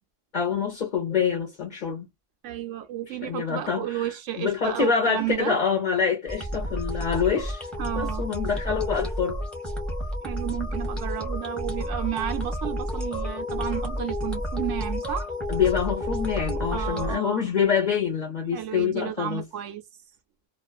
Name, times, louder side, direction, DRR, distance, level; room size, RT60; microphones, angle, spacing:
voice 1, 0.3-2.1 3.1-7.7 8.0-9.4 15.5-19.4, left 6 dB, 40° left, 0.9 m, -26 dB
voice 2, 2.4-5.6 7.8-8.3 10.2-15.3 16.7-17.5 18.5-19.8, right 12 dB, 90° right, 0.9 m, -32 dB
sound 1, 6.3-17.2, equal, ahead, 0.8 m, -30 dB
2.5 x 2.4 x 2.2 m
omnidirectional pair, 1.2 m